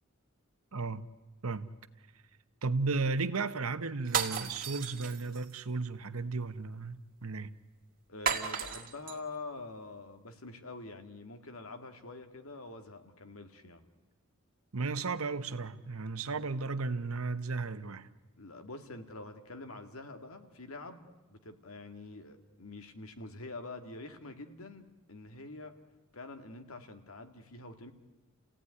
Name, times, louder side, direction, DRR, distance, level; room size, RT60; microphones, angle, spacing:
voice 1, 0.7-1.0 1.4-1.7 2.6-7.5 14.7-18.1, right 3 dB, 85° right, 1.1 m, -34 dB
sound 1, 4.0-5.5 8.3-9.2, right 7 dB, 45° right, 2.3 m, -34 dB
voice 2, 8.1-13.8 18.4-25.8 26.1-27.9, left 2 dB, 80° left, 2.1 m, -46 dB
29.5 x 16.5 x 9.7 m
head